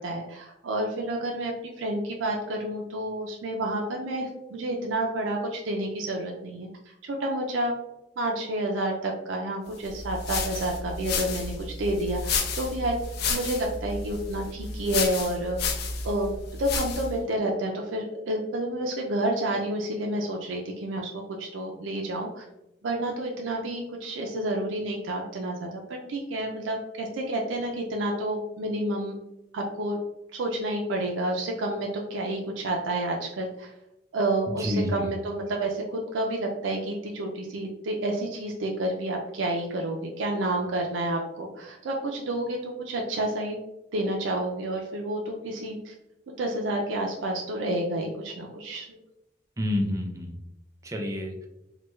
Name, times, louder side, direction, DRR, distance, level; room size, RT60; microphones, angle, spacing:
voice 1, 0.0-7.7 8.2-13.0 13.3-15.6 16.0-16.3 16.6-22.5 22.8-29.2 29.5-30.0 30.3-33.7 34.1-43.6 43.9-45.9 46.4-49.0, right 1 dB, 80° right, 0 dB, 0.4 m, -29 dB
sound 1, 9.8-17.2, left 4 dB, 60° left, 0.4 m, -31 dB
voice 2, 34.5-35.1 49.6-50.4 50.8-51.5, left 1 dB, 15° right, 2 dB, 0.5 m, -29 dB
3.3 x 2.2 x 3.0 m, 0.89 s
head